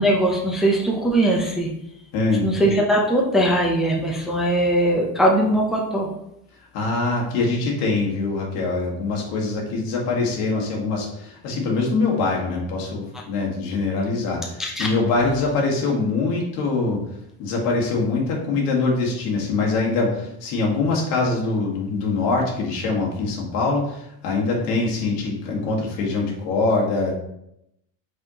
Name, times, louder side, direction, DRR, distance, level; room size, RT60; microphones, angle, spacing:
voice 1, 0.0-1.7 2.4-6.1 14.6-14.9, right 1 dB, ahead, -1 dB, 0.5 m, -20 dB
voice 2, 2.1-2.5 6.7-17.0 17.4-27.1, left 3 dB, 85° left, -1 dB, 1.6 m, -23 dB
5.0 x 3.5 x 2.8 m, 0.78 s
cardioid pair, 125°, 45 cm